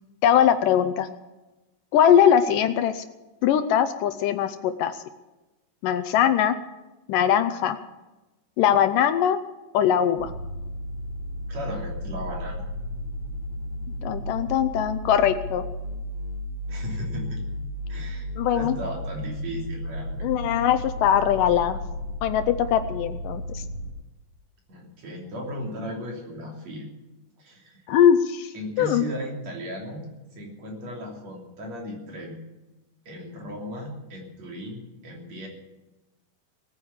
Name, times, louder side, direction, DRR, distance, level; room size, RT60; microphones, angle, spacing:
voice 1, 0.2-1.1 1.9-3.0 3.4-5.0 5.8-6.5 7.1-7.8 8.6-9.4 9.7-10.3 14.0-15.6 18.4-18.8 20.2-21.8 22.2-23.6 27.9-28.5 28.8-29.0, left 9 dB, 80° left, 10 dB, 2.2 m, -21 dB
sound 1, 10.2-23.9, left 1 dB, 85° right, 6.5 m, -33 dB
voice 2, 11.5-12.6 16.7-17.4 17.9-20.3 24.7-26.9 27.4-27.8 28.5-30.1 30.4-32.4 33.1-35.5, equal, 50° right, 0 dB, 4.1 m, -36 dB
19.0 x 9.6 x 7.2 m, 1.1 s
omnidirectional pair, 4.1 m